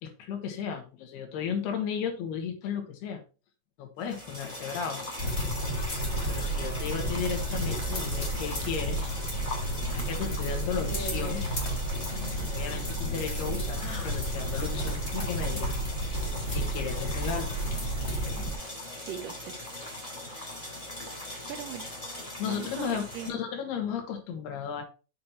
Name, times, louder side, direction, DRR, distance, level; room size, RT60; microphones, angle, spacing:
voice 1, 0.0-3.2 3.8-5.1 6.3-9.1 10.1-11.5 12.5-15.8 16.5-17.5 22.4-24.8, left 7 dB, 70° left, 4 dB, 3.5 m, -34 dB
sound 1, 4.0-23.3, left 1 dB, 10° left, 2.3 m, -40 dB
sound 2, 5.2-18.5, right 1 dB, 25° left, 1.8 m, -32 dB
sound 3, 10.8-11.6 11.9-12.5 13.7-14.2, left 2 dB, 90° left, 1.0 m, -41 dB
voice 2, 19.1-19.6 21.5-22.2 22.4-23.4, right 10 dB, 75° right, 4 dB, 2.0 m, -40 dB
7.5 x 5.9 x 4.3 m, 0.33 s
omnidirectional pair, 5.0 m